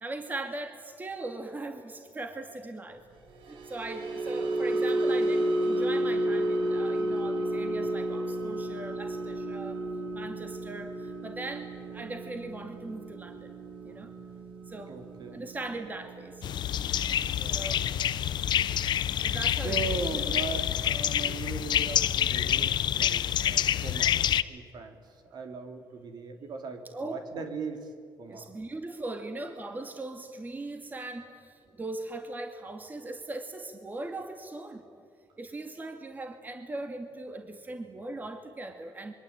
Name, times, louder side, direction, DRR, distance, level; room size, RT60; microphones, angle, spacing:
voice 1, 0.0-3.0 3.4-9.8 10.1-13.5 13.8-14.1 14.7-14.9 15.3-16.4 17.3-17.9 19.2-20.4 26.9-27.4 28.3-34.8 35.4-39.1, right 2 dB, 20° right, 5 dB, 2.3 m, -39 dB
sound 1, 3.3-19.7 20.0-20.3 20.7-20.9, right 1 dB, 80° right, 3.1 m, -32 dB
voice 2, 14.9-15.4 17.4-17.9 18.6-18.7 19.6-24.2 24.5-25.0 25.3-27.9 28.2-28.6, right 5 dB, 60° right, 6 dB, 3.3 m, -39 dB
sound 2, 16.4-24.4, left 10 dB, 65° left, 0.8 m, -27 dB
26.0 x 23.5 x 9.0 m, 2.1 s
cardioid pair, 110°, 8 cm